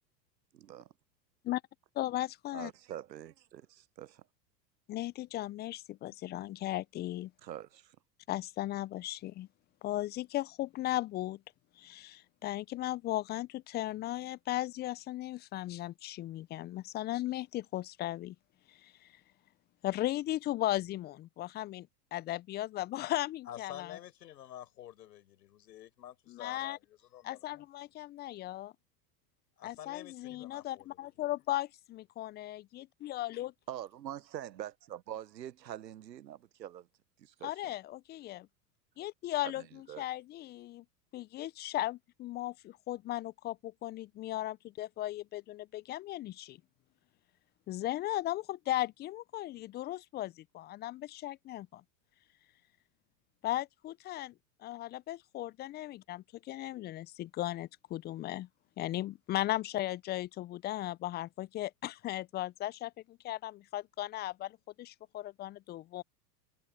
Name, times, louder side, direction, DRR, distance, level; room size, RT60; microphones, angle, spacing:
voice 1, 0.5-0.9 2.5-4.2 7.4-8.0 33.7-36.9 37.2-37.5 39.6-40.0, right 11 dB, 90° right, 0.9 m, -44 dB
voice 2, 2.0-2.7 4.9-7.3 8.3-9.5 9.8-11.4 11.8-18.4 18.7-19.1 19.8-24.0 26.3-26.8 27.2-28.7 29.6-33.5 37.4-38.5 39.0-40.8 41.1-46.6 47.7-51.8 53.4-54.3 54.6-58.5 58.8-66.0, left 15 dB, 20° left, 0.4 m, -37 dB
voice 3, 23.5-27.7 29.6-31.1, left 11 dB, 75° left, 5.3 m, -49 dB
hypercardioid pair, 90°, 49 cm